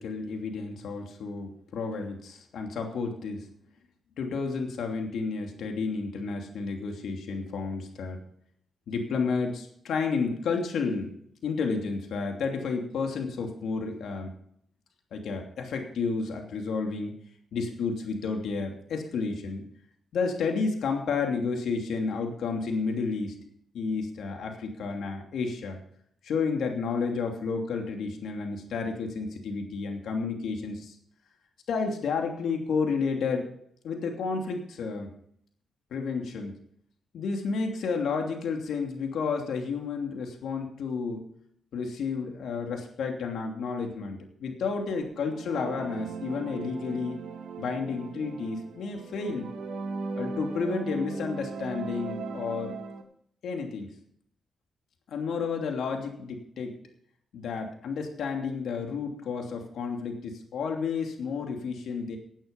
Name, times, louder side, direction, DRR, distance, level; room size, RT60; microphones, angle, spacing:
voice 1, 0.0-3.5 4.2-8.2 8.9-11.1 11.4-14.3 15.1-17.2 17.5-19.6 20.1-23.3 23.7-25.8 26.2-30.9 31.7-33.5 33.8-35.1 35.9-36.5 37.1-41.3 41.7-47.2 47.6-49.5 50.2-52.8 53.4-53.9 55.1-56.7 57.3-62.2, left 4 dB, 80° left, 3 dB, 2.9 m, -31 dB
sound 1, 45.1-53.0, right 4 dB, 80° right, 2.3 m, -38 dB
17.5 x 9.1 x 5.3 m, 0.67 s
cardioid pair, 75°, 0 cm